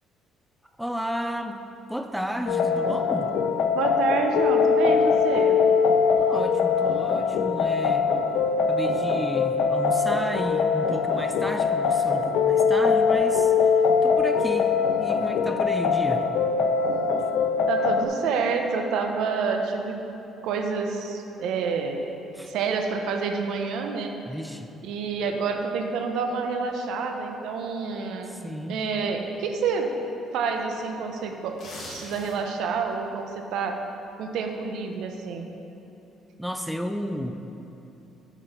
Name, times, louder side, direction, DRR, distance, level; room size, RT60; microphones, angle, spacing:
voice 1, 0.8-1.6 1.9-3.3 6.2-8.1 8.7-16.3 22.3-22.5 24.3-24.7 28.3-28.8 36.4-37.4, equal, ahead, 6 dB, 0.3 m, -33 dB
sound 1, 2.5-18.1, left 5 dB, 75° left, 0.4 m, -22 dB
voice 2, 3.7-5.6 17.7-20.0 20.4-22.0 22.5-24.1 24.8-28.4 28.7-29.9 30.3-31.6 31.9-33.8 34.2-35.5, right 5 dB, 75° right, 4 dB, 0.8 m, -28 dB
sound 2, 31.4-32.6 33.0-33.2, left 2 dB, 50° left, 1.9 m, -40 dB
7.3 x 6.2 x 5.3 m, 2.9 s
cardioid pair, 135°, 0 cm